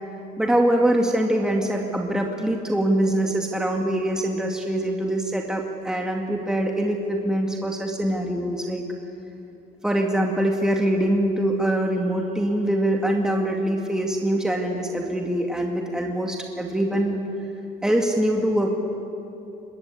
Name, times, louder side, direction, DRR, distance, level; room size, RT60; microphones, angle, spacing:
voice 1, 0.4-8.8 9.8-17.2 17.8-18.7, right 1 dB, 5° right, 1 dB, 2.1 m, -23 dB
25.0 x 21.0 x 8.3 m, 2.8 s
cardioid pair, 110°, 17 cm